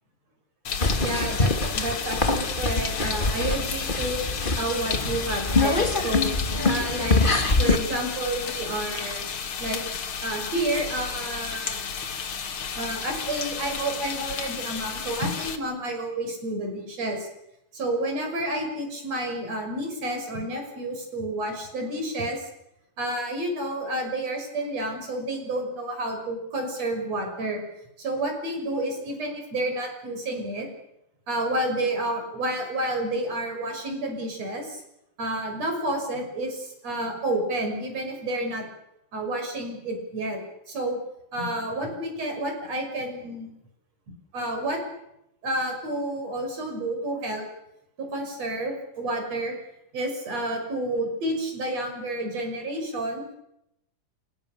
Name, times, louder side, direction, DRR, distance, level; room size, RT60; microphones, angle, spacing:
sound 1, 0.6-15.6, left 6 dB, 45° left, 2.2 m, -33 dB
sound 2, 0.8-7.8, left 3 dB, 20° left, 1.6 m, -24 dB
voice 1, 1.0-4.2 4.6-6.3 6.7-9.3 9.6-9.8 10.2-11.8 12.8-17.3 17.7-22.5 23.0-27.6 28.0-30.7 31.3-34.8 35.2-38.7 39.1-40.4 40.7-41.0 41.3-43.5 44.3-44.8 45.4-47.5 48.0-49.5 49.9-53.4, right 1 dB, 50° right, 4 dB, 6.9 m, -30 dB
28.5 x 26.0 x 6.7 m, 0.84 s
omnidirectional pair, 3.9 m